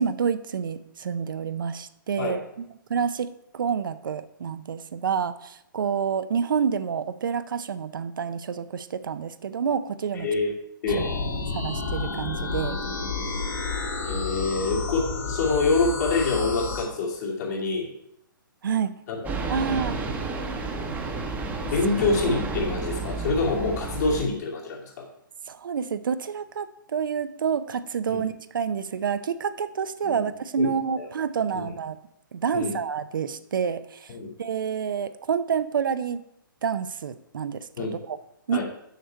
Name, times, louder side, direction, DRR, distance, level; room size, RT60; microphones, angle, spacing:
voice 1, 0.0-2.4 2.9-10.3 10.9-11.0 11.5-12.8 18.6-19.0 19.5-20.0 25.5-32.0 32.3-34.1 34.4-36.2 36.6-37.7 38.1-38.2 38.5-38.6, right 7 dB, 70° right, 12 dB, 0.5 m, -28 dB
voice 2, 10.1-10.5 10.8-11.0 14.0-17.9 19.1-19.3 21.6-25.1 28.1-28.2 30.0-30.3 30.6-31.1 31.5-31.6 32.5-32.7 34.1-34.3 37.8-37.9 38.5-38.6, left 3 dB, 50° left, -3 dB, 2.4 m, -26 dB
sound 1, 10.9-16.8, left 4 dB, 70° left, 3.0 m, -30 dB
sound 2, 19.2-24.2, right 3 dB, 15° right, 0.9 m, -31 dB
6.6 x 6.6 x 4.5 m, 0.77 s
hypercardioid pair, 135°, 12 cm